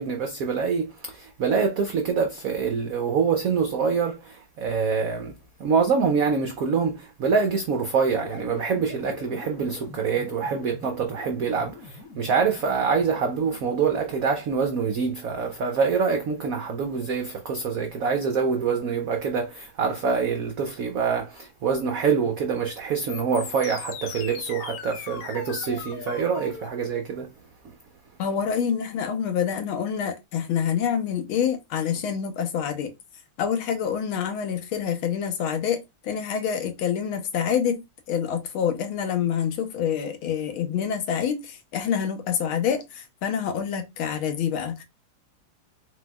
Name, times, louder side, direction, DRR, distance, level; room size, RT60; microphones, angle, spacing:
voice 1, 0.0-5.3 5.6-27.3, right 5 dB, 80° right, 0.7 m, -25 dB
sound 1, 8.1-14.8 23.1-26.7, left 6 dB, 65° left, 0.9 m, -41 dB
voice 2, 28.2-32.9 33.4-37.8 38.1-44.8, left 8 dB, 85° left, 1.7 m, -27 dB
4.6 x 4.1 x 2.3 m
omnidirectional pair, 2.3 m